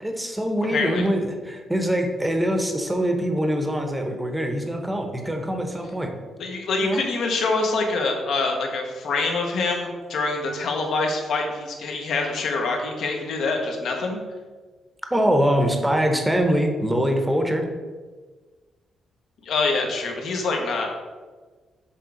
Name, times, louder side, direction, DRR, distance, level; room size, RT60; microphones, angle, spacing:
voice 1, 0.0-6.1 6.8-7.0 15.1-17.6, equal, 5° right, 3 dB, 0.9 m, -23 dB
voice 2, 0.7-1.1 6.4-14.2 19.4-20.9, left 3 dB, 70° left, 2 dB, 1.2 m, -25 dB
7.4 x 3.5 x 5.0 m, 1.4 s
cardioid pair, 130°, 0 cm